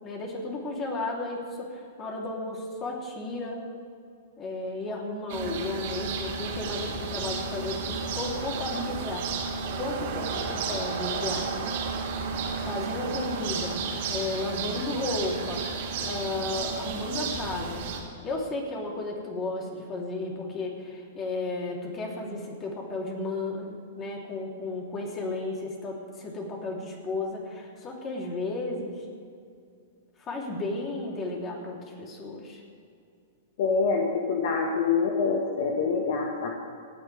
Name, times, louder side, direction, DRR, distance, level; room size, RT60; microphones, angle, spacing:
voice 1, 0.0-3.6 4.4-9.5 9.7-11.8 12.6-15.7 16.0-18.0 18.2-29.0 30.2-32.6, left 2 dB, 25° left, -1 dB, 3.6 m, -33 dB
sound 1, 5.3-18.0, right 4 dB, 55° right, 2.8 m, -32 dB
voice 2, 33.6-36.5, left 5 dB, 55° left, 0 dB, 1.7 m, -25 dB
29.0 x 9.8 x 3.6 m, 2.4 s
hypercardioid pair, 105°, 0 cm